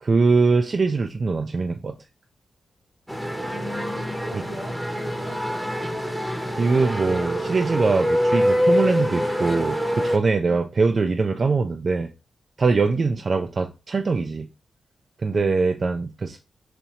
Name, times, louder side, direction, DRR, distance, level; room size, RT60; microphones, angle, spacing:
voice 1, 0.0-2.0 6.6-12.1 12.6-14.5 15.2-16.4, right 4 dB, 50° right, 0.4 m, -22 dB
sound 1, 3.1-10.2, equal, 5° right, 0.8 m, -25 dB
voice 2, 3.5-6.2 10.5-10.6 13.0-13.2 15.3-15.5, equal, 85° right, 1.5 m, -39 dB
4.2 x 2.6 x 2.9 m
cardioid pair, 60°, 0 cm